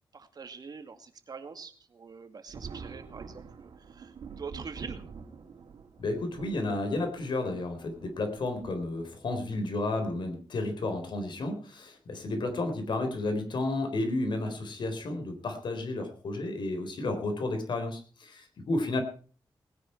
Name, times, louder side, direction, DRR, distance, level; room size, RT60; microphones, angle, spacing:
voice 1, 0.1-5.0, right 5 dB, 50° right, 8 dB, 2.2 m, -44 dB
Thunder, 2.5-9.5 10.5-10.6 12.1-12.4 12.7-12.8 14.8-15.0 15.7-16.0, right 5 dB, 70° right, 3.0 m, -47 dB
voice 2, 6.0-19.0, left 2 dB, 65° left, 6 dB, 4.1 m, -32 dB
19.5 x 10.0 x 4.6 m, 0.40 s
cardioid pair, 95°, 8 cm